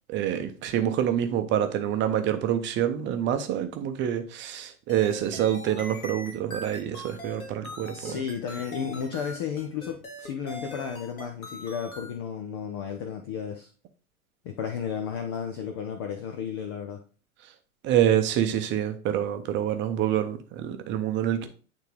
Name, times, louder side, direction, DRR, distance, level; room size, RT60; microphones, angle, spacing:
voice 1, 0.1-8.2 17.8-21.5, right 10 dB, 25° right, 0.8 m, -26 dB
sound 1, 4.9-12.1, left 1 dB, 70° left, 2.0 m, -42 dB
voice 2, 7.9-13.7 14.4-17.0, left 7 dB, 20° left, 0.3 m, -33 dB
8.9 x 3.7 x 3.3 m
figure-of-eight pair, 95°, 43 cm